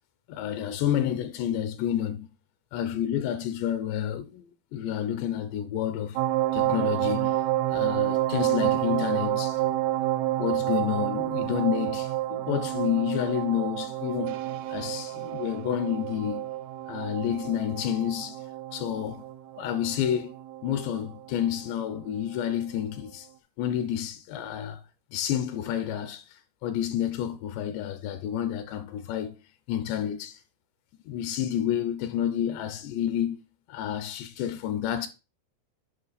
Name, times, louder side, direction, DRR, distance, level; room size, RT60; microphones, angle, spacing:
voice 1, 0.3-2.3 2.7-6.2 6.5-7.4 7.7-9.6 10.4-14.4 14.7-16.4 16.9-18.4 18.7-19.2 19.6-20.3 20.6-23.3 23.6-24.8 25.1-29.4 29.7-30.4 31.1-35.1, left 10 dB, 80° left, 2.8 m, -29 dB
sound 1, 6.2-21.7 22.0-22.2, right 15 dB, 85° right, 2.4 m, -29 dB
9.9 x 5.3 x 4.0 m
omnidirectional pair, 5.3 m